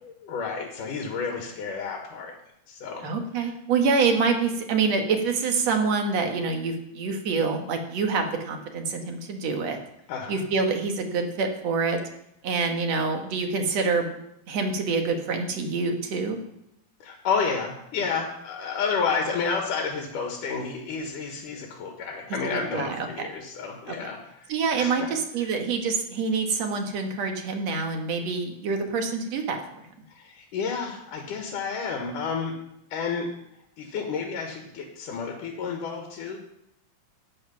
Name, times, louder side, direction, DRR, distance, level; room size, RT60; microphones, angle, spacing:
voice 1, 0.0-2.3 2.7-3.1 3.4-3.5 10.1-10.5 17.0-25.1 30.1-32.5 32.9-33.3 33.8-36.4, left 5 dB, 85° left, 2 dB, 3.3 m, -31 dB
voice 2, 3.0-9.8 10.3-12.0 12.4-14.1 14.5-16.4 22.7-23.3 23.9-24.0 24.5-29.6, right 4 dB, 60° right, 4 dB, 2.6 m, -26 dB
14.0 x 9.7 x 5.9 m, 0.80 s
omnidirectional pair, 3.6 m